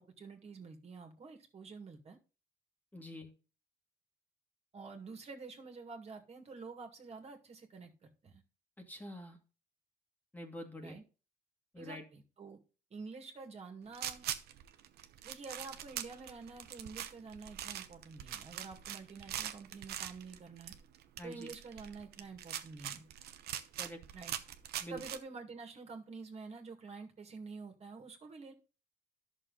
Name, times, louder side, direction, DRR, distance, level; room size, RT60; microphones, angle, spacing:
voice 1, 0.0-2.2 4.7-7.9 8.2-8.4 10.8-11.0 11.8-12.6 12.9-14.3 15.2-20.7 21.2-23.0 24.1-24.4 24.9-28.5, right 4 dB, 40° right, 2.1 m, -48 dB
voice 2, 2.9-3.3 8.8-9.4 10.3-11.0 11.7-12.0 21.2-21.5 23.8-24.0 24.8-25.0, equal, 10° left, 1.8 m, -46 dB
sound 1, 13.9-25.2, right 11 dB, 70° right, 1.0 m, -43 dB
11.0 x 6.4 x 4.0 m
cardioid pair, 110°, 17 cm